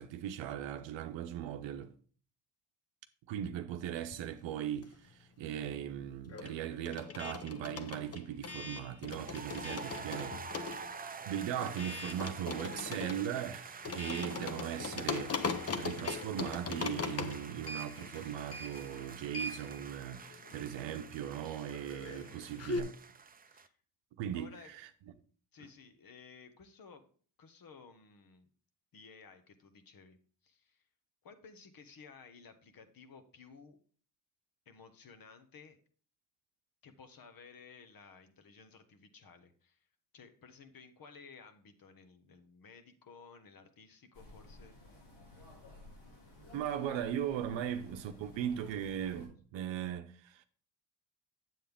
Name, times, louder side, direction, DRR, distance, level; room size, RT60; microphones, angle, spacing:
voice 1, 0.0-1.9 3.3-10.7 11.3-22.9 24.2-24.8 46.5-50.4, right 10 dB, 85° right, 0.8 m, -39 dB
sound 1, 4.0-5.2 5.5-22.8, left 4 dB, 35° left, 0.9 m, -41 dB
sound 2, 9.1-23.7, right 5 dB, 20° right, 0.5 m, -48 dB
voice 2, 23.5-23.8 24.3-24.8 25.5-27.1 27.4-28.5 28.9-30.2 30.4-30.8 31.2-33.8 34.6-35.8 36.8-39.9 40.1-44.7, left 5 dB, 50° left, 1.3 m, -56 dB
sound 3, 44.1-49.3, left 2 dB, 90° left, 4.6 m, -54 dB
7.7 x 7.7 x 3.5 m
cardioid pair, 85°, 44 cm